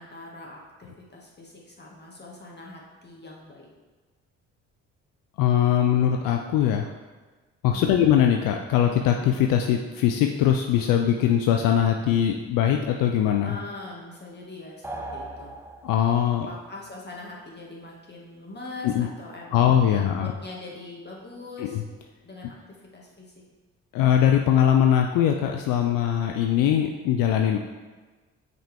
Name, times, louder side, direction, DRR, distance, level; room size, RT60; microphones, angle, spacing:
voice 1, 0.0-3.7 7.7-8.0 13.4-15.5 16.5-21.8 22.2-23.3, left 2 dB, 30° left, -3 dB, 1.9 m, -42 dB
voice 2, 5.4-6.9 7.6-13.5 15.8-16.5 18.8-19.1 19.5-20.3 21.6-21.8 23.9-27.6, left 10 dB, 75° left, 3 dB, 0.5 m, -21 dB
sound 1, 14.8-16.3, right 2 dB, 10° right, 0.8 m, -38 dB
5.9 x 5.1 x 3.5 m, 1.3 s
hypercardioid pair, 55°, 33 cm